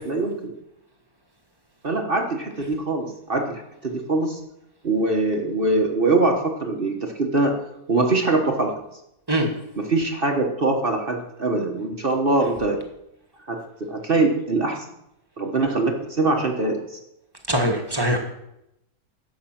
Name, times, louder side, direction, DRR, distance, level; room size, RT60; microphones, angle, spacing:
voice 1, 0.1-0.5 1.8-4.4 4.8-7.5 7.9-8.7 9.8-12.8 13.5-14.8 15.4-16.8, right 2 dB, 40° right, 2 dB, 1.3 m, -23 dB
voice 2, 17.5-18.2, equal, 15° right, 3 dB, 1.5 m, -22 dB
11.5 x 8.0 x 5.9 m, 0.83 s
omnidirectional pair, 1.6 m